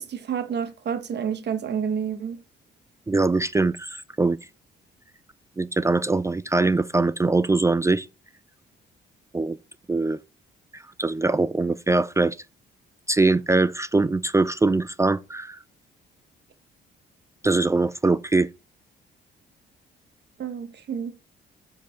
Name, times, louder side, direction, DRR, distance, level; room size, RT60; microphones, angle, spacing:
voice 1, 0.0-2.4 20.4-21.1, right 7 dB, 60° right, 1.3 m, -29 dB
voice 2, 3.1-4.4 5.6-8.1 9.3-9.6 9.9-10.2 10.7-12.4 13.1-15.6 17.4-18.5, right 3 dB, 15° right, 0.4 m, -22 dB
7.2 x 4.7 x 4.5 m
cardioid pair, 90°, 20 cm